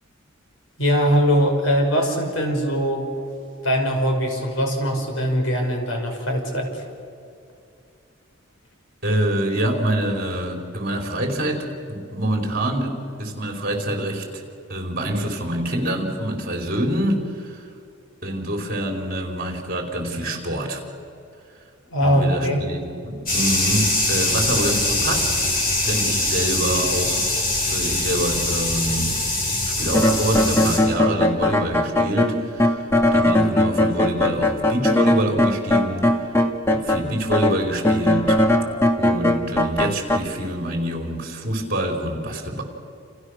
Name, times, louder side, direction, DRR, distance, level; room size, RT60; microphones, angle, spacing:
voice 1, 0.8-3.0 3.6-6.8 21.9-22.6, equal, 70° left, 2 dB, 5.8 m, -21 dB
voice 2, 9.0-14.4 14.7-17.7 18.2-20.8 22.0-25.3 25.8-27.3 27.7-29.2 29.8-36.3 36.7-38.4 39.0-42.6, right 1 dB, 45° right, 2 dB, 4.5 m, -26 dB
sound 1, 23.3-30.8, left 2 dB, 45° left, 7.9 m, -23 dB
sound 2, 29.9-37.0 37.3-40.2, left 1 dB, 15° left, 2.0 m, -19 dB
30.0 x 28.5 x 6.6 m, 2.4 s
head